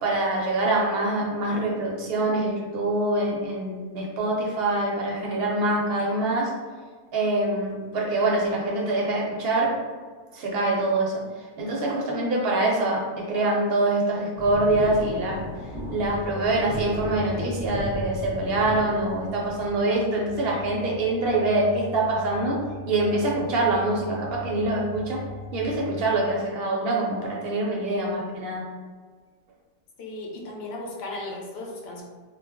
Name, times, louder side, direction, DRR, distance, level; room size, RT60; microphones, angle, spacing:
voice 1, 0.0-6.5 7.1-9.7 10.3-11.2 11.6-15.4 15.9-25.2 25.5-28.6, right 2 dB, 55° right, -2 dB, 0.7 m, -25 dB
sound 1, 14.4-19.8, equal, 5° left, 0.8 m, -36 dB
sound 2, 16.1-26.1, left 1 dB, 85° left, 1.0 m, -39 dB
voice 2, 30.0-32.0, left 2 dB, 60° left, -2 dB, 0.8 m, -36 dB
2.4 x 2.0 x 3.5 m, 1.5 s
omnidirectional pair, 1.4 m